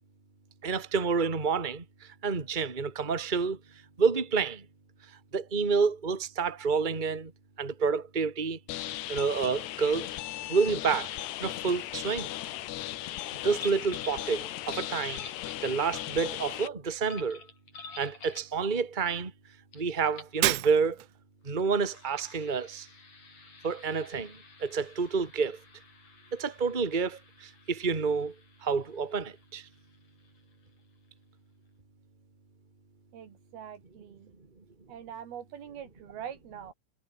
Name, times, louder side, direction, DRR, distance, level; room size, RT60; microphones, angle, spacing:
voice 1, 0.6-1.8 2.2-3.6 4.0-4.6 5.3-7.3 7.6-8.6 9.1-10.1 10.5-11.1 11.4-12.3 13.4-15.2 15.6-17.4 18.0-19.3 19.7-21.0 21.5-22.9 23.6-24.3 24.6-25.6 26.3-27.2 27.7-28.3 28.6-29.6, right 5 dB, 15° right, 1.9 m, -28 dB
sound 1, 8.7-16.7, left 14 dB, 75° left, 3.1 m, -37 dB
sound 2, 13.6-14.2 14.6-16.2 17.1-18.6 19.7-19.8 20.1-20.4 21.4-30.7, left 4 dB, 40° left, 5.6 m, -50 dB
Shatter, 20.4-21.2, right 20 dB, 90° right, 3.1 m, -29 dB
voice 2, 33.1-34.3 34.9-36.7, right 9 dB, 60° right, 4.7 m, -43 dB
omnidirectional pair, 5.2 m